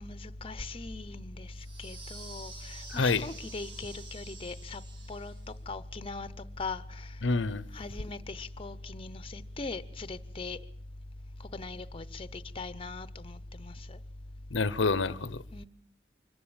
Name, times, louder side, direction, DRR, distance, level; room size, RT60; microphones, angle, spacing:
voice 1, 0.0-1.5 1.8-4.8 5.1-5.3 5.7-6.3 6.6-7.1 7.7-10.6 11.5-14.0 15.5-15.7, left 3 dB, 30° left, 0.8 m, -40 dB
sound 1, 1.5-5.6, right 3 dB, 75° right, 7.3 m, -49 dB
voice 2, 2.9-3.3 7.2-7.6 14.5-15.4, left 4 dB, 85° left, 0.8 m, -27 dB
25.0 x 14.5 x 8.8 m
head